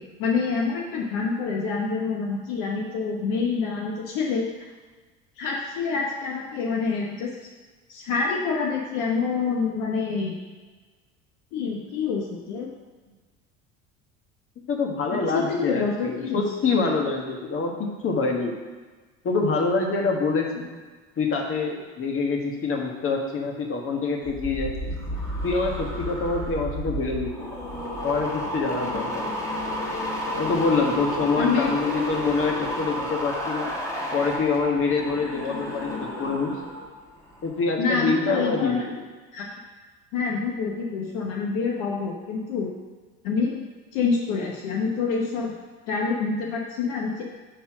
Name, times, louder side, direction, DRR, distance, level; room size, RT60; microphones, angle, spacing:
voice 1, 0.0-4.4 5.4-7.3 7.9-10.3 11.5-12.7 15.1-16.4 31.4-31.7 37.8-38.8 39.3-39.5 40.1-42.7 43.2-43.6 43.9-45.5 45.9-47.2, left 5 dB, 70° left, -1 dB, 1.1 m, -27 dB
voice 2, 14.7-18.6 19.2-20.6 21.2-24.9 25.4-27.6 28.0-29.4 30.4-33.7 34.1-36.6 37.4-39.0, left 4 dB, 40° left, 1 dB, 1.5 m, -26 dB
sound 1, 24.2-36.9 37.2-37.6, left 1 dB, 10° left, 1.8 m, -31 dB
5.7 x 4.4 x 6.1 m, 1.3 s
hypercardioid pair, 75°, 33 cm